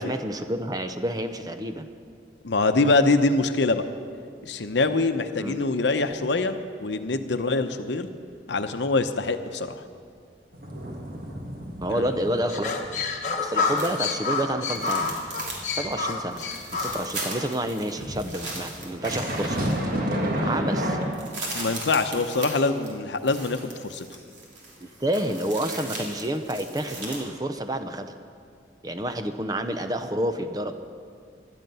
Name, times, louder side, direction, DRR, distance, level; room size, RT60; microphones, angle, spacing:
voice 1, 0.0-1.9 5.4-5.6 11.8-12.8 13.4-15.1 15.7-16.4 16.7-19.9 20.4-21.0 24.8-28.2 28.8-30.8, right 1 dB, 20° right, 8 dB, 0.6 m, -29 dB
voice 2, 2.4-3.8 4.4-8.1 8.5-9.8 11.9-12.1 21.5-24.1, left 3 dB, 75° left, 9 dB, 0.8 m, -24 dB
sound 1, 10.5-12.4 12.8-13.0 13.4-17.0 18.0-21.0, equal, 50° right, 1.8 m, -31 dB
sound 2, 12.5-17.5, left 4 dB, 40° left, 1.1 m, -28 dB
sound 3, 13.8-14.1 14.7-15.6 15.9-16.0 16.3-20.0 20.4-20.5 20.7-27.2, right 2 dB, 80° right, 3.1 m, -38 dB
17.0 x 12.0 x 5.5 m, 2.2 s
head